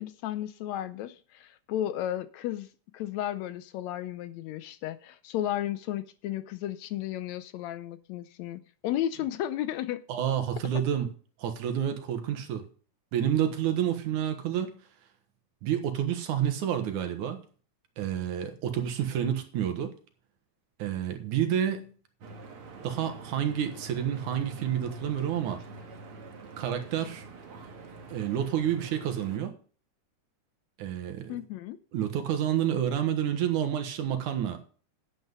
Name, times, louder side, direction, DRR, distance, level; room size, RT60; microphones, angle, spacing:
voice 1, 0.0-2.7 2.9-10.0 10.6-10.7 31.3-31.8, left 12 dB, 75° left, 1.8 m, -33 dB
voice 2, 10.1-11.1 11.4-12.6 13.1-14.8 15.6-17.4 18.0-19.9 20.8-21.9 22.8-25.6 26.6-27.3 28.1-29.5 30.8-31.4 31.9-34.6, right 9 dB, 85° right, 2.9 m, -29 dB
Stream / Boat Water vehicle, 22.2-29.4, right 2 dB, 50° right, 2.3 m, -45 dB
10.5 x 8.1 x 5.5 m
omnidirectional pair, 3.4 m